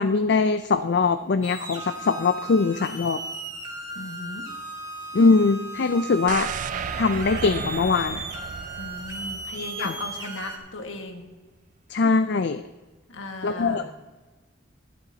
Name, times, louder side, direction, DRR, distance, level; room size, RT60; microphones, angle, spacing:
voice 1, 0.0-3.2 5.1-6.5 6.9-8.2 9.8-9.9 11.9-12.6 13.4-13.9, left 4 dB, 55° left, 10 dB, 0.4 m, -22 dB
sound 1, 1.4-10.6, right 2 dB, 20° right, 1.4 m, -36 dB
voice 2, 3.9-4.5 8.8-11.3 13.1-13.9, left 2 dB, 80° left, 4 dB, 1.5 m, -37 dB
sound 2, 6.3-10.3 10.6-10.7, right 6 dB, 40° right, 0.3 m, -34 dB
13.0 x 12.0 x 2.8 m, 1.2 s
head